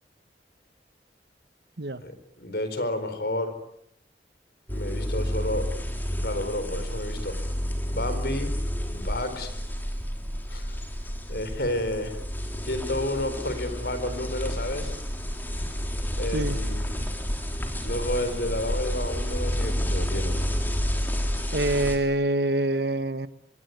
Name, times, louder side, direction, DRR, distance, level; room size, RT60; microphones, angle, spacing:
voice 1, 2.0-3.5 4.7-5.7 6.2-7.4 7.9-8.6 8.9-9.5 10.5-10.7 11.3-12.2 12.6-14.9 16.2-17.0 17.8-20.4, left 1 dB, 60° left, 11 dB, 4.5 m, -31 dB
sound 1, 4.7-22.0, equal, 10° left, 3.5 m, -30 dB
voice 2, 21.5-23.3, right 2 dB, 65° right, 13 dB, 1.4 m, -25 dB
25.5 x 22.0 x 9.5 m, 0.74 s
head